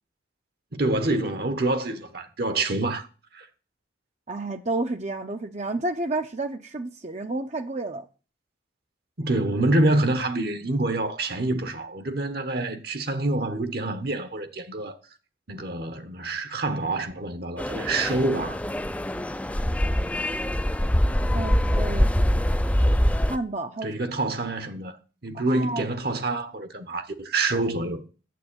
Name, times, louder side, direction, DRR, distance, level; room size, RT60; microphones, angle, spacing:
voice 1, 0.7-3.1 3.3-3.5 9.2-15.0 15.5-18.6 23.8-25.0 25.2-28.0, right 2 dB, 55° right, 1.2 m, -26 dB
voice 2, 4.3-8.0 21.3-22.5 23.3-24.0 25.3-25.9 27.5-27.6, right 2 dB, 35° right, 0.8 m, -30 dB
sound 1, 17.6-23.4, equal, 5° left, 0.5 m, -24 dB
9.3 x 7.7 x 9.0 m
head